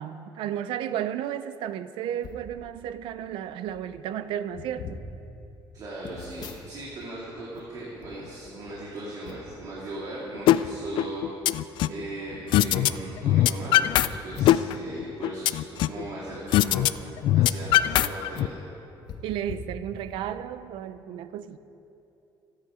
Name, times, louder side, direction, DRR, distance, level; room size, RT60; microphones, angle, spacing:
voice 1, 0.0-5.0 19.2-21.6, right 10 dB, 80° right, 13 dB, 0.7 m, -33 dB
sound 1, 2.2-2.5 3.3-3.4 3.6-3.9 4.5-5.1 6.0-7.1 7.4-8.8 9.2-9.6 10.4-10.7 11.3-11.4 11.6-11.7 12.5-13.0 14.1-14.2 15.7-15.9 16.4-18.0 18.3-18.4 19.1-20.3 20.8-20.9, left 5 dB, 50° left, 1.5 m, -42 dB
voice 2, 5.7-18.6, right 1 dB, 45° right, -5 dB, 2.6 m, -38 dB
sound 2, 10.5-10.6 11.0-12.0 12.5-12.9 13.2-14.1 14.4-16.0 16.5-16.9 17.2-18.5, left 13 dB, 70° left, 0.4 m, -20 dB
26.5 x 9.9 x 5.0 m, 2.8 s
cardioid pair, 170°, 9 cm